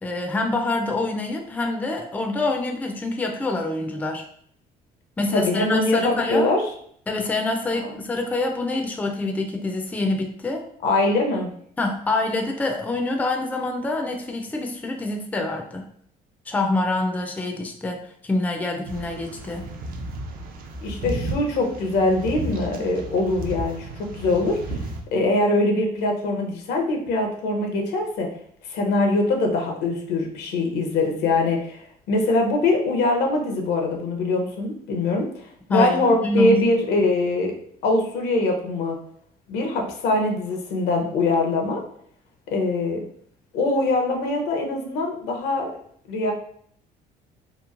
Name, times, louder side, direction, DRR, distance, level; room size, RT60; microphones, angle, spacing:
voice 1, 0.0-4.2 5.2-6.5 7.1-10.6 11.8-15.8 16.5-19.7 35.7-36.6, left 2 dB, 10° left, 2 dB, 0.3 m, -26 dB
voice 2, 5.3-6.6 7.7-7.9 10.8-11.5 20.8-24.8 25.1-28.3 28.7-35.3 35.7-37.5 37.8-39.0 39.5-41.8 42.5-43.0 43.5-45.7 46.1-46.3, left 2 dB, 85° left, 2 dB, 0.7 m, -23 dB
sound 1, 18.8-25.0, right 1 dB, 60° right, 0.5 m, -33 dB
3.0 x 2.2 x 2.4 m, 0.63 s
cardioid pair, 110°, 17 cm